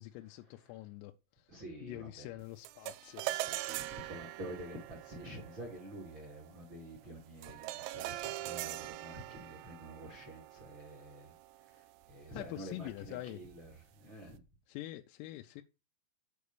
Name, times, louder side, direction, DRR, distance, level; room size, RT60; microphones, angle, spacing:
voice 1, 0.0-1.5 1.8-3.2 12.3-13.4 14.7-15.6, left 16 dB, 90° left, 3.3 m, -45 dB
voice 2, 1.5-2.3 3.2-11.3 11.7-11.8 12.1-13.7 14.0-14.4, right 1 dB, 45° right, 1.6 m, -48 dB
sound 1, 2.7-12.1, right 16 dB, 90° right, 3.3 m, -43 dB
8.3 x 4.7 x 6.7 m
omnidirectional pair, 5.9 m